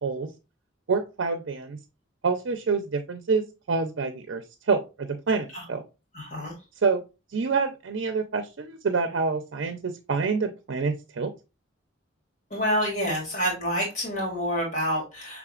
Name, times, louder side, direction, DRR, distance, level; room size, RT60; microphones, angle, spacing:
voice 1, 0.9-1.8 2.2-5.8 6.8-7.0 7.3-11.3, right 4 dB, 70° right, 7 dB, 0.5 m, -27 dB
voice 2, 6.1-6.5 12.5-15.4, equal, 40° left, -3 dB, 2.1 m, -28 dB
5.8 x 3.6 x 2.4 m, 0.28 s
head